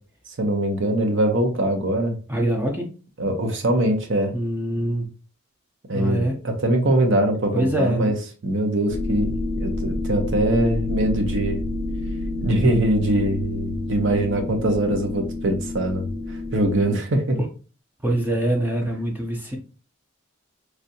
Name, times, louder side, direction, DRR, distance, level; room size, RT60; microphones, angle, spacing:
voice 1, 0.3-2.2 3.2-4.3 5.9-8.1 8.4-11.6 12.4-16.1 16.5-17.4, right 1 dB, 60° right, 4 dB, 0.7 m, -22 dB
voice 2, 2.3-3.0 4.3-5.1 5.9-6.4 7.5-8.1 17.4-17.5 18.0-19.6, right 1 dB, 10° right, 0 dB, 0.4 m, -24 dB
sound 1, 8.9-16.8, left 2 dB, 65° left, 0.5 m, -28 dB
3.2 x 2.6 x 2.7 m, 0.36 s
head